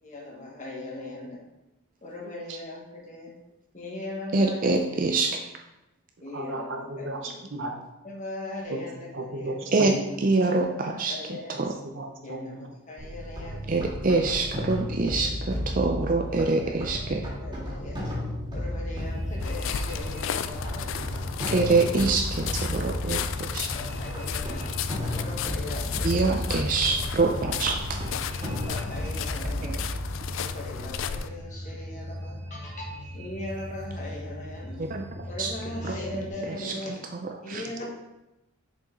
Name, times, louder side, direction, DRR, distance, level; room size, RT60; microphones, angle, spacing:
voice 1, 0.0-1.4 2.0-3.3 3.7-4.7 6.2-7.3 8.0-9.6 10.5-11.6 12.2-13.6 14.3-14.4 15.1-15.3 16.4-16.8 17.0-18.1 18.5-21.0 21.4-21.9 23.7-24.6 25.1-26.4 26.7-27.2 28.3-29.8 30.3-34.8 35.3-37.0 37.4-37.9, left 2 dB, 35° left, -2 dB, 1.5 m, -39 dB
voice 2, 4.3-5.5 9.7-11.7 13.7-17.3 21.5-23.7 26.0-28.0 29.6-30.0 34.8-35.5 35.8-36.0 36.4-36.7 37.5-37.6, right 3 dB, 40° right, 3 dB, 0.4 m, -25 dB
voice 3, 6.3-7.7 8.7-8.8 9.1-10.1 11.5-12.6, right 2 dB, 60° right, 3 dB, 0.9 m, -35 dB
sound 1, 13.0-30.2, left 1 dB, 20° right, 2.0 m, -34 dB
sound 2, 18.9-36.3, equal, 75° right, 2.0 m, -39 dB
sound 3, 19.4-31.3, left 8 dB, 60° left, 0.3 m, -34 dB
6.8 x 5.2 x 3.9 m, 0.95 s
head